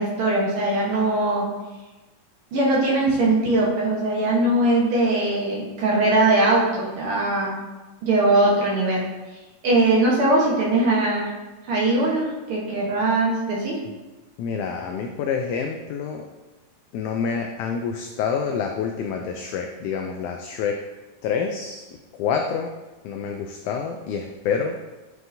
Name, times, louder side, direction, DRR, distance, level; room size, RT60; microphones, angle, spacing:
voice 1, 0.0-1.5 2.5-7.6 8.0-9.0 9.6-11.3 11.7-13.8, right 2 dB, 60° right, -4 dB, 1.5 m, -21 dB
voice 2, 14.4-16.3 16.9-20.8 21.2-21.8 22.2-22.7 23.0-24.7, left 6 dB, 80° left, 3 dB, 1.8 m, -27 dB
9.5 x 4.7 x 2.6 m, 1.1 s
omnidirectional pair, 3.8 m